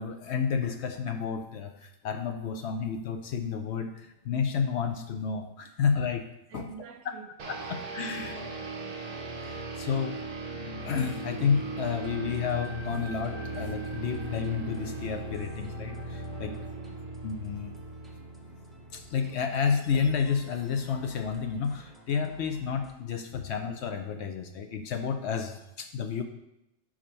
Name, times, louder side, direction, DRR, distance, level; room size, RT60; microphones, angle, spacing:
voice 1, 0.0-6.2 6.5-6.7 7.5-8.4 9.4-10.2 10.8-16.6 17.2-17.7 18.9-26.2, left 6 dB, 65° left, 6 dB, 0.7 m, -31 dB
voice 2, 6.5-7.3 8.0-8.9 16.7-17.1, right 5 dB, 70° right, 5 dB, 1.1 m, -47 dB
sound 1, 7.4-19.6, right 3 dB, 40° right, 0.6 m, -38 dB
sound 2, 10.5-16.7, left 3 dB, 40° left, 1.8 m, -46 dB
sound 3, 11.8-22.9, right 3 dB, ahead, 0.3 m, -55 dB
5.0 x 4.3 x 5.4 m, 0.85 s
omnidirectional pair, 1.4 m